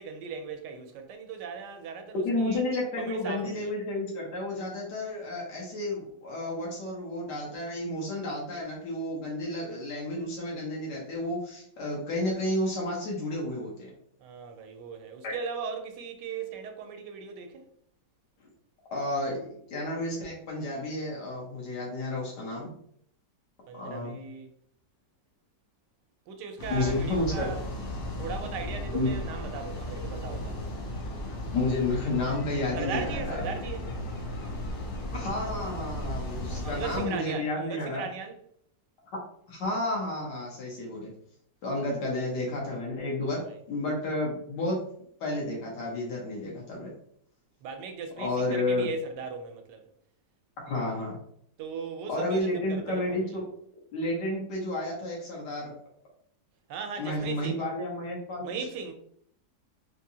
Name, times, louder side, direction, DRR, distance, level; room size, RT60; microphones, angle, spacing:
voice 1, 0.0-2.6 3.0-3.7 14.2-17.7 23.7-24.5 26.3-27.6 28.2-30.6 32.7-33.9 36.5-38.4 42.0-42.3 43.3-43.6 47.6-49.9 51.6-53.4 56.7-57.6 58.4-58.9, right 5 dB, 85° right, 1.2 m, -38 dB
voice 2, 2.2-13.9 15.2-15.3 18.9-22.7 23.7-24.1 26.7-27.5 28.9-29.1 31.5-33.6 35.1-38.1 39.5-41.1 41.6-43.4 43.7-44.8 45.2-46.9 48.2-48.9 50.7-51.2 52.1-53.4 53.9-55.7 57.0-58.5, left 1 dB, 85° left, 1.6 m, -31 dB
sound 1, 26.6-37.1, left 1 dB, 60° left, 0.6 m, -35 dB
3.7 x 2.6 x 2.7 m
omnidirectional pair, 1.8 m